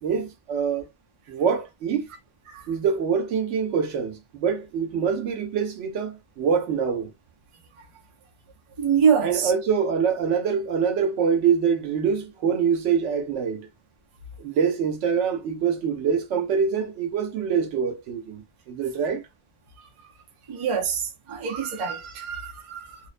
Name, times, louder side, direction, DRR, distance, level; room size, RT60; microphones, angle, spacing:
voice 1, 0.0-0.9 1.3-2.1 2.7-7.1 9.2-13.7 14.4-19.2, right 6 dB, 80° right, 0.9 m, -25 dB
voice 2, 8.8-9.5 20.5-23.0, right 7 dB, 45° right, 0.4 m, -25 dB
2.4 x 2.0 x 2.4 m
omnidirectional pair, 1.2 m